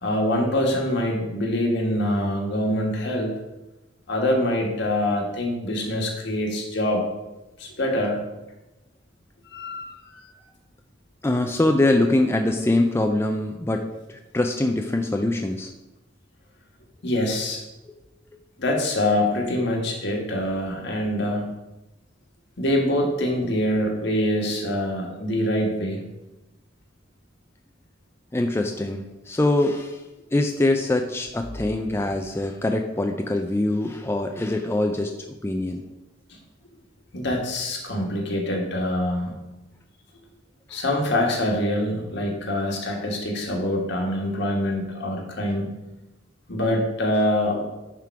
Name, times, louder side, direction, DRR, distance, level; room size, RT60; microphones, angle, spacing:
voice 1, 0.0-3.3 4.1-7.0 7.6-8.3 9.5-10.2 17.0-17.6 18.6-21.5 22.6-26.0 36.3-36.4 37.1-39.3 40.7-45.7 46.5-47.6, left 1 dB, 65° left, 1 dB, 1.6 m, -25 dB
voice 2, 11.2-15.7 17.9-18.0 28.3-30.0 30.3-35.1 35.4-35.8, left 2 dB, 15° left, 4 dB, 0.4 m, -23 dB
10.5 x 3.8 x 4.6 m, 1.0 s
head